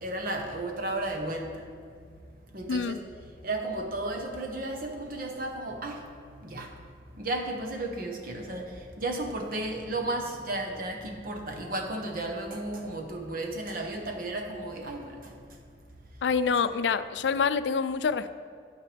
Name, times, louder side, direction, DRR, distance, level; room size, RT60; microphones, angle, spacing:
voice 1, 0.0-1.6 2.5-3.0 3.4-6.1 6.4-6.7 7.1-15.3, right 2 dB, 55° right, 2 dB, 1.1 m, -33 dB
voice 2, 2.7-3.0 16.2-18.3, left 5 dB, 90° left, 13 dB, 0.4 m, -26 dB
8.9 x 8.7 x 3.4 m, 2.2 s
head